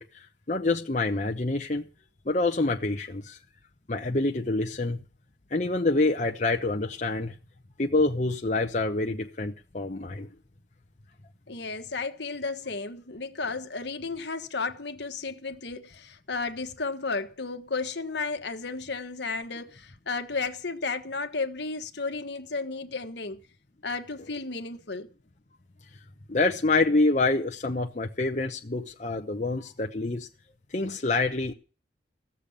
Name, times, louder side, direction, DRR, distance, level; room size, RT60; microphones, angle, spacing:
voice 1, 0.0-1.9 2.3-3.4 3.9-5.0 5.5-7.3 7.8-10.3 26.3-30.3 30.7-31.5, left 2 dB, 40° left, 0.9 m, -27 dB
voice 2, 11.5-23.4 23.8-25.1, left 4 dB, 70° left, 1.4 m, -33 dB
16.5 x 6.9 x 8.7 m
head